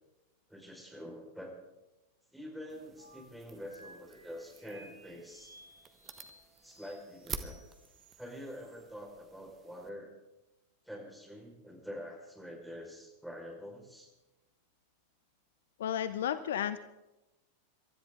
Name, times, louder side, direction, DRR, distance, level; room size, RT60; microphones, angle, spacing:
voice 1, 0.5-1.6 2.3-5.6 6.6-7.6 8.2-10.1 10.8-14.1, equal, ahead, -1 dB, 4.9 m, -46 dB
sound 1, 2.7-9.9, right 6 dB, 25° right, 1.3 m, -49 dB
sound 2, 3.0-8.8, right 1 dB, 85° right, 3.0 m, -58 dB
voice 2, 15.8-16.8, left 10 dB, 60° left, 14 dB, 0.6 m, -32 dB
27.5 x 13.5 x 3.8 m, 1.0 s
figure-of-eight pair, 90°, 0 cm